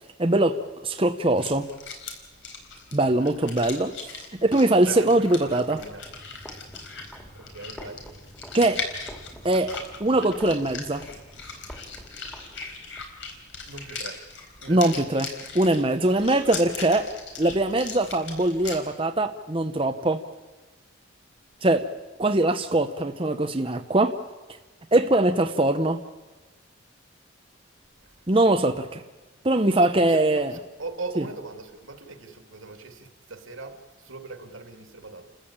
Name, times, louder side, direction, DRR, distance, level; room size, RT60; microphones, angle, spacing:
voice 1, 0.2-1.7 2.9-3.9 4.4-5.8 8.5-8.8 9.4-11.1 14.7-15.3 15.5-17.1 17.4-20.2 21.6-21.9 22.2-24.2 24.9-26.0 28.3-29.0 29.4-30.6 31.2-31.3, right 1 dB, 25° right, 0.8 m, -22 dB
sound 1, 1.3-18.8, left 4 dB, 65° left, 4.2 m, -39 dB
voice 2, 4.7-6.0 7.3-8.1 13.7-14.3 14.6-15.0 28.0-28.1 28.6-28.7 29.7-35.3, right 3 dB, 80° right, 2.6 m, -40 dB
sound 2, 5.7-13.1, equal, 10° left, 2.4 m, -47 dB
30.0 x 14.5 x 8.7 m
head